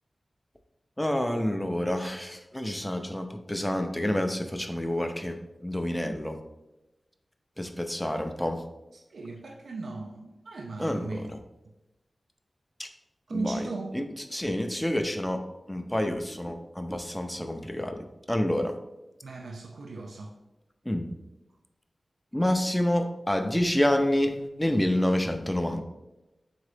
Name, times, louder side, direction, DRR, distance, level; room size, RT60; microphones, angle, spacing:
voice 1, 1.0-6.4 7.6-8.6 10.8-11.4 12.8-12.9 13.3-13.7 13.9-14.0 14.3-15.4 15.7-18.7 20.9-21.1 22.3-25.8, left 1 dB, 10° left, 6 dB, 0.4 m, -28 dB
voice 2, 8.9-11.3 13.3-13.9 19.2-20.3, right 3 dB, 85° right, 2 dB, 0.3 m, -37 dB
3.9 x 3.6 x 3.3 m, 0.98 s
wide cardioid pair, 75°, 0 cm